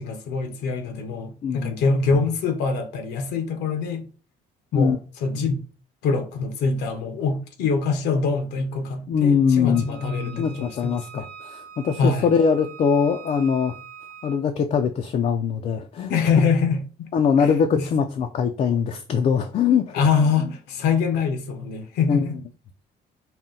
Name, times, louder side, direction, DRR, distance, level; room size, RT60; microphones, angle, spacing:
voice 1, 0.0-4.0 4.7-5.6 6.0-11.2 12.0-12.3 16.1-16.8 17.4-17.8 19.9-22.4, left 4 dB, 80° left, 0.8 m, -24 dB
voice 2, 1.4-1.8 4.7-5.0 9.1-9.9 10.4-13.8 14.2-16.2 17.1-20.0 22.1-22.3, left 6 dB, 40° left, 0.4 m, -22 dB
Wind instrument woodwind instrument, 9.7-14.4, right 7 dB, 80° right, 0.7 m, -43 dB
4.1 x 2.1 x 3.7 m
cardioid pair, 110°, 17 cm